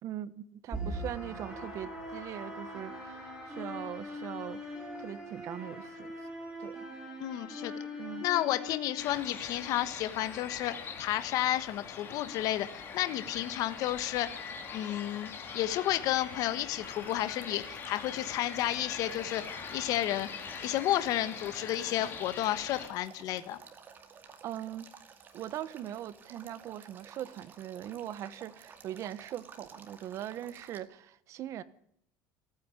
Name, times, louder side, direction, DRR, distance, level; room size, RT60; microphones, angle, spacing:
voice 1, 0.0-6.1 6.6-6.8 8.0-8.3 24.4-24.9 25.3-31.6, right 11 dB, 40° right, 1.1 m, -41 dB
sound 1, 0.7-9.7, left 1 dB, 5° right, 6.7 m, -41 dB
voice 2, 7.2-7.7 8.2-14.4 14.7-19.4 19.7-20.3 20.6-23.6, left 14 dB, 50° left, 1.3 m, -31 dB
sound 2, 9.0-22.9, left 6 dB, 30° left, 3.1 m, -43 dB
Male speech man speaking / Stream / Trickle dribble, 16.8-30.8, right 6 dB, 25° right, 2.3 m, -54 dB
28.0 x 9.6 x 9.7 m
cardioid pair, 175°, 8 cm